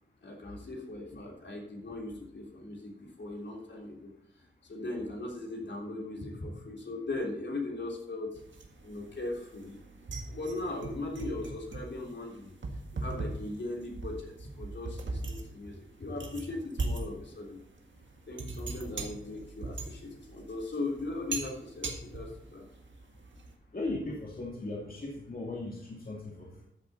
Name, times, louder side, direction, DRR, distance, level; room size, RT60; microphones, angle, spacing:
voice 1, 0.2-4.1 4.6-8.4 8.8-9.8 10.2-12.5 12.9-17.6 18.3-22.6, left 2 dB, 65° left, -1 dB, 3.4 m, -39 dB
sound 1, 8.4-23.6, right 2 dB, 75° right, 1.8 m, -40 dB
voice 2, 23.7-26.7, left 2 dB, 45° left, -3 dB, 2.6 m, -37 dB
13.5 x 7.3 x 4.2 m, 0.74 s
wide cardioid pair, 75°, 20 cm